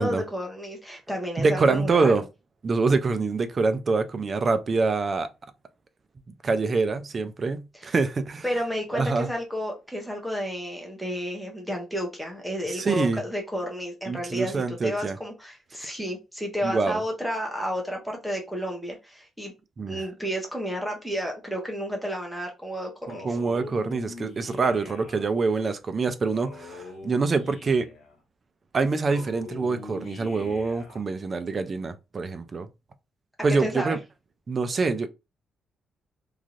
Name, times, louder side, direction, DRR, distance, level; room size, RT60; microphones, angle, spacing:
voice 1, 0.0-2.1 7.8-7.9 8.4-19.5 19.9-23.2 33.5-34.0, equal, ahead, 0.7 m, -31 dB
voice 2, 1.4-2.2 2.6-5.3 6.4-8.4 8.9-9.3 12.7-13.2 14.1-15.2 16.6-17.0 19.8-20.1 23.1-27.9 28.7-32.7 33.4-34.0 34.5-35.1, right 4 dB, 25° right, 0.3 m, -25 dB
Male speech man speaking, 23.1-25.3 26.3-28.1 29.1-31.1, left 2 dB, 70° left, 1.0 m, -42 dB
3.1 x 2.6 x 2.4 m
cardioid pair, 175°, 0 cm